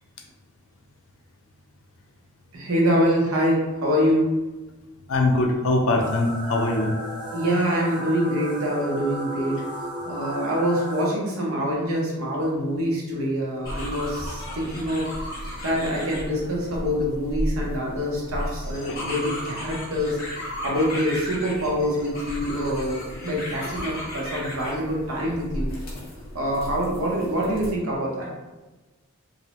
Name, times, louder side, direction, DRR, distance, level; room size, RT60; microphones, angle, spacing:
voice 1, 2.5-4.3 7.3-9.6 10.1-15.1 15.6-20.2 20.6-25.7 26.3-28.3, equal, 70° right, -3 dB, 0.7 m, -25 dB
voice 2, 5.1-7.0 18.9-19.0, left 2 dB, 60° left, 3 dB, 0.4 m, -22 dB
sound 1, 6.0-11.0, right 1 dB, 20° right, 0.4 m, -34 dB
sound 2, 13.6-27.7, equal, 40° left, 0.8 m, -34 dB
2.6 x 2.1 x 2.8 m, 1.1 s
head